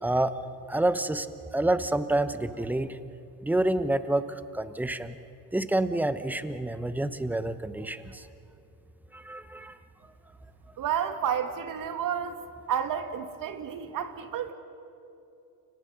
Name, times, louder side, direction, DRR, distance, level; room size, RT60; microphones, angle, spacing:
voice 1, 0.0-0.3 0.7-1.3 1.5-3.0 3.4-5.2 5.5-8.3 9.1-9.7, right 1 dB, 5° right, 12 dB, 1.0 m, -28 dB
voice 2, 10.8-12.4 12.7-14.5, right 8 dB, 40° right, 7 dB, 2.3 m, -30 dB
30.0 x 26.0 x 5.4 m, 2.6 s
supercardioid pair, 110°, 47 cm